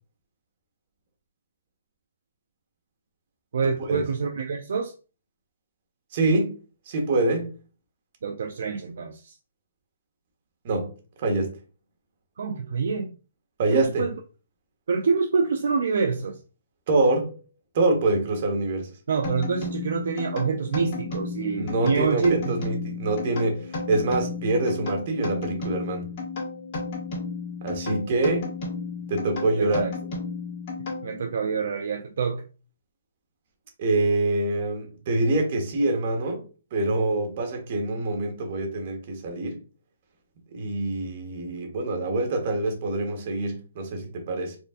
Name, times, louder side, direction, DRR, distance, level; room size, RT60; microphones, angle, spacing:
voice 1, 3.5-4.9 8.2-9.4 12.4-13.1 13.7-14.2 14.9-16.4 19.1-22.4 29.6-29.9 31.0-32.4, right 5 dB, 65° right, 0.4 m, -26 dB
voice 2, 6.1-6.6 6.9-7.5 10.6-10.9 11.2-11.5 13.6-14.1 16.9-17.4 17.7-18.9 21.6-26.1 27.6-28.5 29.1-29.8 33.8-36.4 36.7-39.6 40.5-44.6, right 2 dB, 45° right, 1.1 m, -25 dB
sound 1, 19.2-31.4, left 3 dB, 35° left, 1.8 m, -33 dB
4.4 x 2.5 x 2.4 m
hypercardioid pair, 150°, 0 cm